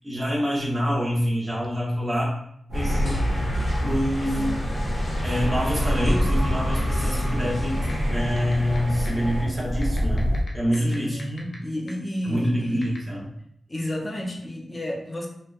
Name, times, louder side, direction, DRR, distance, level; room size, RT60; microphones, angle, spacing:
voice 1, 0.0-2.3 2.7-3.3 3.8-4.7 5.2-7.8 8.1-11.5 12.2-13.2, equal, 30° right, -4 dB, 0.9 m, -26 dB
sound 1, 2.7-9.4, equal, 50° left, 1.0 m, -28 dB
sound 2, 2.7-10.4, equal, 85° right, 0.5 m, -28 dB
voice 2, 6.9-7.6 10.7-13.0 13.7-15.3, left 1 dB, 25° left, -1 dB, 0.6 m, -31 dB
sound 3, 7.9-8.0 8.4-8.8 9.0-9.1 9.8-11.5 11.9-12.0 12.8-13.0, left 5 dB, 75° left, 0.4 m, -41 dB
2.7 x 2.1 x 2.2 m, 0.71 s
cardioid pair, 75°, 0 cm